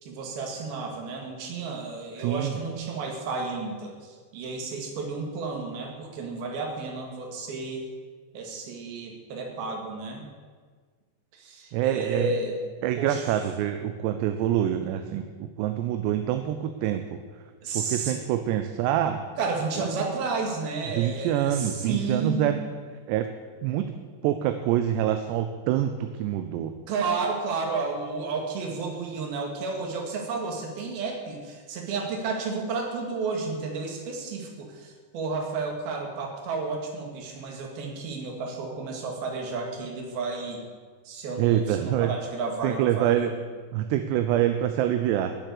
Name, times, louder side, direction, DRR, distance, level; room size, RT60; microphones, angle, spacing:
voice 1, 0.0-7.9 8.3-10.2 11.3-12.6 13.0-13.3 17.6-18.2 19.4-22.6 26.9-40.6 41.1-43.3, right 4 dB, 60° right, 1 dB, 3.8 m, -32 dB
voice 2, 2.2-2.5 11.7-12.3 12.8-17.2 17.7-19.2 20.9-22.6 23.1-23.3 23.6-23.9 24.2-26.7 41.4-42.1 42.6-43.3 43.7-45.4, right 11 dB, 80° right, 8 dB, 2.7 m, -26 dB
19.0 x 7.8 x 6.8 m, 1.5 s
omnidirectional pair, 5.1 m